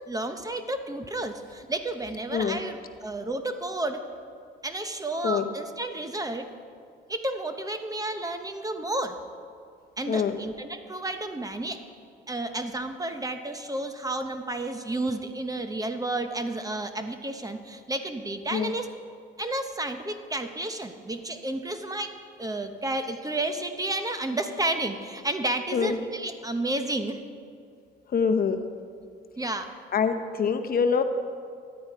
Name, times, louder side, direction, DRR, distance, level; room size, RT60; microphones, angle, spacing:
voice 1, 0.1-4.0 4.6-6.5 7.1-9.2 10.0-11.8 12.3-18.9 19.4-27.2 29.4-29.7, right 2 dB, 20° right, 7 dB, 0.8 m, -31 dB
voice 2, 2.3-2.6 5.2-5.5 10.1-10.4 18.5-18.7 25.7-26.0 28.1-28.7 29.9-31.0, left 6 dB, 50° left, 8 dB, 0.8 m, -25 dB
13.5 x 9.6 x 4.6 m, 2.3 s
cardioid pair, 90°, 20 cm